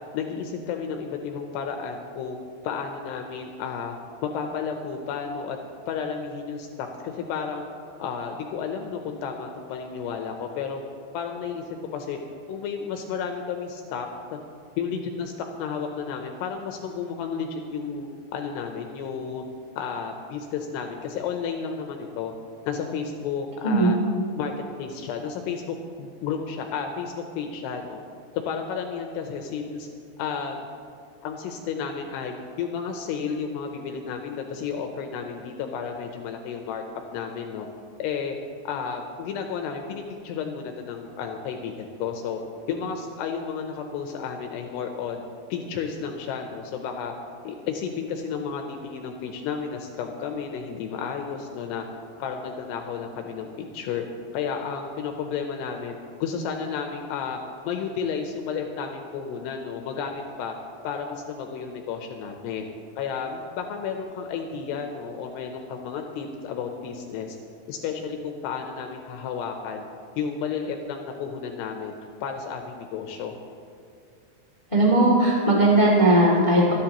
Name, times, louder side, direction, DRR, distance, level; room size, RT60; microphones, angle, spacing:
voice 1, 0.1-2.4 2.6-5.6 5.9-7.7 8.0-10.8 11.1-11.6 11.9-12.2 12.5-14.4 14.8-15.3 15.6-19.4 19.8-22.3 22.6-24.0 24.4-24.5 24.8-28.0 28.5-29.9 30.2-30.7 31.2-36.8 37.1-37.7 38.0-38.4 38.6-42.4 42.7-45.2 45.5-47.1 47.4-51.9 52.2-54.0 54.3-55.9 56.2-57.4 57.7-60.5 60.8-62.6 63.0-67.4 67.7-69.8 70.2-71.9 72.2-73.4, left 6 dB, 80° left, 4 dB, 2.8 m, -32 dB
voice 2, 23.6-24.0 74.7-76.7, right 1 dB, 25° left, -3 dB, 0.7 m, -18 dB
27.0 x 10.0 x 3.0 m, 2.3 s
omnidirectional pair, 5.0 m